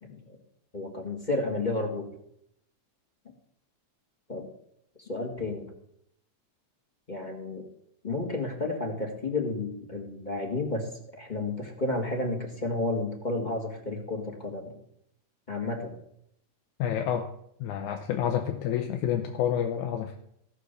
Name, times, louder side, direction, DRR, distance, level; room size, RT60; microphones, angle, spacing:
voice 1, 0.0-0.4 0.7-2.1 4.3-4.5 5.0-5.7 7.1-7.6 8.0-10.9 11.2-14.8 15.5-16.0, left 2 dB, 20° left, 2 dB, 1.3 m, -31 dB
voice 2, 16.8-17.3 17.6-20.2, left 9 dB, 90° left, 4 dB, 2.3 m, -29 dB
16.0 x 6.7 x 6.7 m, 0.75 s
omnidirectional pair, 3.4 m